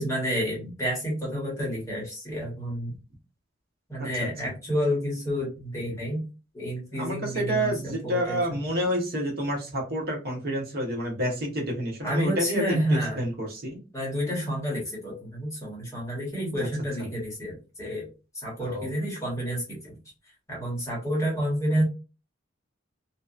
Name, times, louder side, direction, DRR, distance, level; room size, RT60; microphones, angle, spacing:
voice 1, 0.0-2.9 3.9-6.2 6.5-8.6 12.0-13.3 13.9-18.1 18.3-19.9 20.5-21.8, equal, 15° left, -3 dB, 1.1 m, -29 dB
voice 2, 7.0-12.8 13.2-13.8 16.6-16.7 18.6-18.9, equal, 50° right, 0 dB, 0.8 m, -29 dB
2.7 x 2.3 x 2.4 m, 0.31 s
head